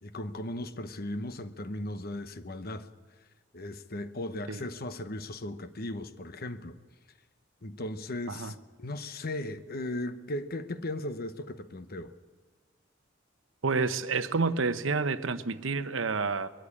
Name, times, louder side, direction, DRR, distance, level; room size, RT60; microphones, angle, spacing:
voice 1, 0.0-2.9 3.5-6.8 7.6-12.2, left 1 dB, 50° left, 1.0 m, -37 dB
voice 2, 13.6-16.5, right 4 dB, 70° right, 0.9 m, -29 dB
21.5 x 13.5 x 9.9 m
head